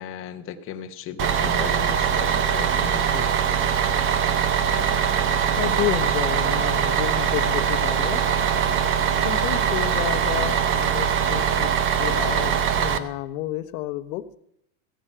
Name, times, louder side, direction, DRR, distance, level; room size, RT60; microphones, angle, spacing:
voice 1, 0.0-3.3, left 9 dB, 30° left, 7 dB, 1.0 m, -36 dB
Bus, 1.2-13.0, right 7 dB, 25° right, 0.8 m, -22 dB
voice 2, 5.2-8.2 8.7-11.7 12.0-14.3, left 15 dB, 75° left, 11 dB, 1.1 m, -31 dB
15.5 x 8.9 x 5.7 m, 0.73 s
supercardioid pair, 150°, 45 cm